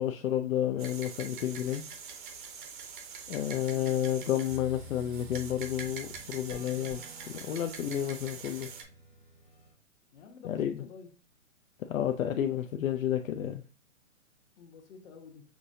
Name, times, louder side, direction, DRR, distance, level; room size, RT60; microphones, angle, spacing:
voice 1, 0.0-1.8 3.3-8.7 10.4-10.8 11.9-13.6, left 10 dB, 75° left, 0.5 m, -31 dB
sound 1, 0.8-8.8, right 6 dB, 40° right, 0.7 m, -44 dB
sound 2, 4.5-9.7, equal, 10° left, 0.3 m, -51 dB
voice 2, 10.1-11.1 14.6-15.4, left 5 dB, 55° left, 1.1 m, -50 dB
5.9 x 2.7 x 2.6 m
hypercardioid pair, 145°, 41 cm